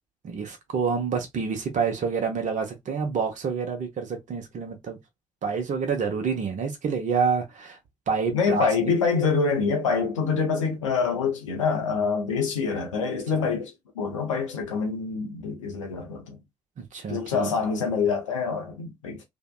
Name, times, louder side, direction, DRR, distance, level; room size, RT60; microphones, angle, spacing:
voice 1, 0.2-5.0 5.4-7.8 8.1-8.7 16.8-17.5, right 5 dB, 55° right, 0.7 m, -28 dB
voice 2, 8.3-16.4 17.1-19.2, left 5 dB, 85° left, 0.5 m, -26 dB
2.6 x 2.1 x 2.2 m
figure-of-eight pair, 40°, 16 cm